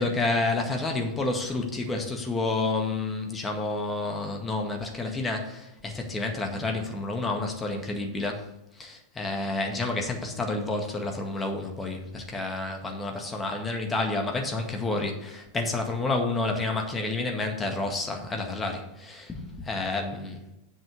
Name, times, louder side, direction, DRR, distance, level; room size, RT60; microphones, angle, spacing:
voice 1, 0.0-8.4 8.8-20.4, left 2 dB, 15° left, 3 dB, 1.8 m, -29 dB
7.7 x 6.3 x 6.3 m, 0.87 s
figure-of-eight pair, 90°, 0 cm